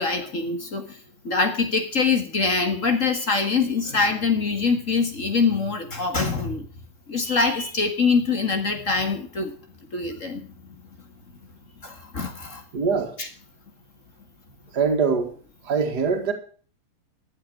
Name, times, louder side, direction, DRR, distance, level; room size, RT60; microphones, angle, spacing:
voice 1, 0.0-6.7 7.1-9.5 9.9-10.5 11.8-12.6 13.2-13.3, left 4 dB, 40° left, 2.0 m, -24 dB
voice 2, 12.7-13.1 14.7-15.3 15.7-16.3, right 5 dB, 50° right, 2.5 m, -23 dB
14.0 x 8.8 x 6.2 m
omnidirectional pair, 2.2 m